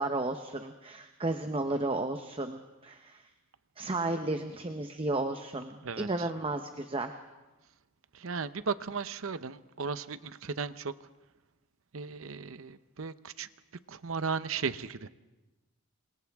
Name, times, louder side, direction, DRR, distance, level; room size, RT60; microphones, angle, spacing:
voice 1, 0.0-3.2 3.8-7.2, right 2 dB, 25° right, 6 dB, 0.9 m, -33 dB
voice 2, 5.8-6.3 8.1-10.9 11.9-13.5 13.9-15.1, right 5 dB, 75° right, 13 dB, 0.8 m, -36 dB
28.0 x 27.0 x 3.6 m, 1.1 s
head